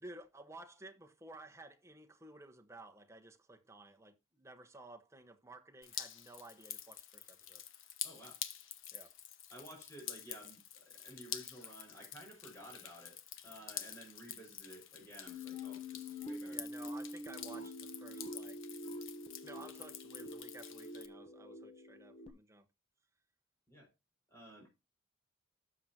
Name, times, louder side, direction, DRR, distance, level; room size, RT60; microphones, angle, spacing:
voice 1, 0.0-7.6 8.9-9.1 16.5-18.6 19.4-22.6, right 2 dB, 15° right, 1.2 m, -54 dB
Drip, 5.8-21.1, left 10 dB, 75° left, 1.2 m, -48 dB
voice 2, 8.0-8.4 9.5-13.2 13.4-16.6 23.7-23.9 24.3-24.7, right 1 dB, 15° left, 5.6 m, -54 dB
sound 1, 15.3-22.3, left 1 dB, 30° left, 1.0 m, -46 dB
12.5 x 8.0 x 2.9 m
head